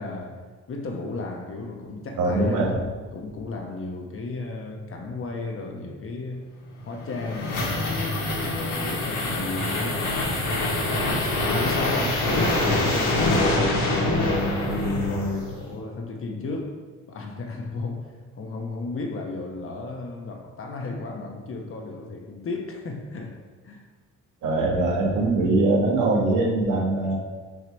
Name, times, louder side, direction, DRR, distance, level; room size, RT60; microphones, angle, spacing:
voice 1, 0.0-6.6 6.8-8.4 8.8-10.5 11.0-14.3 14.7-16.8 17.1-23.8 26.9-27.2, left 3 dB, 45° left, 1.0 m, -34 dB
voice 2, 2.2-2.8 12.6-12.7 24.4-27.2, right 2 dB, 85° right, 1.3 m, -22 dB
sound 1, 6.8-15.7, left 2 dB, 80° left, 1.6 m, -25 dB
6.1 x 3.1 x 5.2 m
cardioid pair, 90°, 30 cm